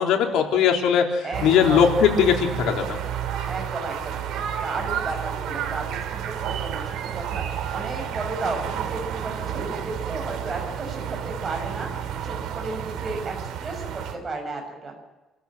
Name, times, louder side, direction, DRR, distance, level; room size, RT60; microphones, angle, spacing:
voice 1, 0.0-3.0, left 7 dB, 85° left, 2 dB, 3.9 m, -20 dB
voice 2, 1.2-1.9 3.5-11.9 12.2-15.0, right 3 dB, 20° right, 0 dB, 7.5 m, -33 dB
sound 1, 1.3-14.2, right 9 dB, 75° right, 3.3 m, -31 dB
27.5 x 15.0 x 7.9 m, 1.1 s
cardioid pair, 170°, 0 cm